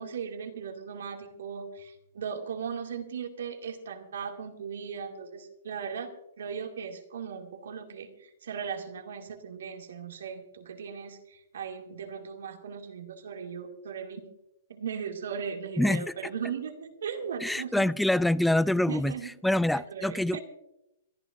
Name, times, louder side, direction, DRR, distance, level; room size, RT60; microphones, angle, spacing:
voice 1, 0.0-14.3 14.7-17.9 18.9-19.3 19.7-20.4, right 6 dB, 75° right, 2.3 m, -38 dB
voice 2, 15.8-16.1 17.4-19.1 19.4-20.4, left 1 dB, 5° left, 0.4 m, -25 dB
26.0 x 13.0 x 2.6 m
hypercardioid pair, 130°, 0 cm